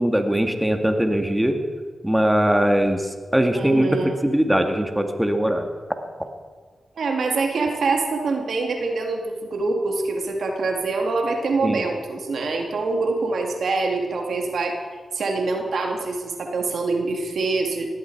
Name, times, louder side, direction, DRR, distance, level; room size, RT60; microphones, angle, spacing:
voice 1, 0.0-1.6 2.0-5.7 11.6-11.8, right 1 dB, 10° right, 5 dB, 2.2 m, -21 dB
voice 2, 3.5-4.2 7.0-14.8 15.1-17.9, right 3 dB, 75° right, 2 dB, 2.3 m, -25 dB
19.5 x 14.5 x 4.8 m, 1.5 s
supercardioid pair, 40°, 0 cm